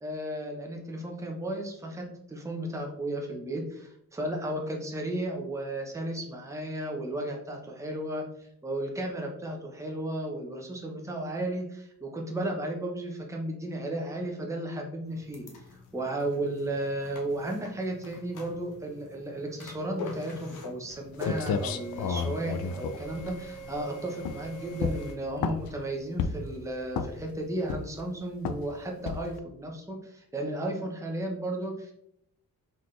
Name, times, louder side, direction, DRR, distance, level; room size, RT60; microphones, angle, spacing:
voice 1, 0.0-15.4 15.7-31.9, right 1 dB, 10° right, 0 dB, 0.8 m, -34 dB
sound 1, 15.0-25.1, equal, 60° left, 1.0 m, -44 dB
sound 2, 20.9-21.0 21.2-23.8 24.2-24.5 24.8-25.8 26.2-26.6 26.9-27.3 27.7-28.1 28.5-28.7 29.1-29.4, left 6 dB, 75° left, 0.5 m, -31 dB
4.0 x 3.9 x 3.2 m, 0.74 s
wide cardioid pair, 135°, 35 cm